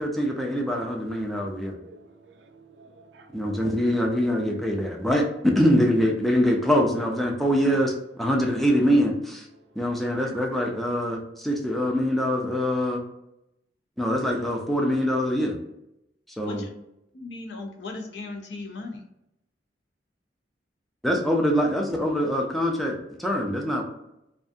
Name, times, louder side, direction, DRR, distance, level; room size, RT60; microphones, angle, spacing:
voice 1, 0.0-1.8 3.3-5.3 5.6-7.9 8.2-9.5 9.8-13.0 14.0-15.6 16.4-16.6 21.0-23.8, equal, ahead, 0.4 m, -24 dB
voice 2, 1.0-4.3 4.6-4.9, right 3 dB, 70° right, 0.4 m, -52 dB
voice 3, 17.1-19.0 21.6-21.8, left 2 dB, 70° left, 0.5 m, -37 dB
2.4 x 2.3 x 2.6 m
head